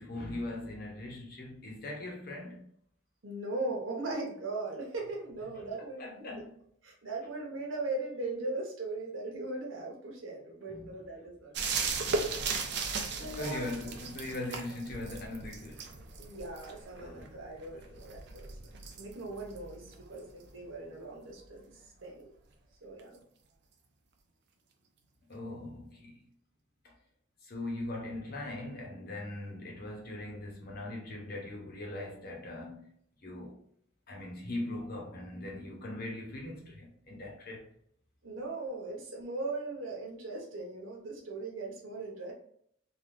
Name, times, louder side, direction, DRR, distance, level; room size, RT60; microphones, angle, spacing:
voice 1, 0.0-2.7 6.0-6.5 10.7-10.9 13.2-15.9 17.0-17.3 25.3-26.1 27.4-32.8 33.2-33.6 34.1-37.7, left 2 dB, 50° left, 0.9 m, -40 dB
voice 2, 3.2-6.3 6.8-11.8 13.2-13.6 16.2-18.7 19.0-22.3 22.8-23.2 38.2-42.3, right 2 dB, 85° right, 1.0 m, -39 dB
sound 1, 11.5-20.9 23.0-23.1, right 4 dB, 60° right, 0.5 m, -37 dB
3.4 x 2.4 x 2.5 m
head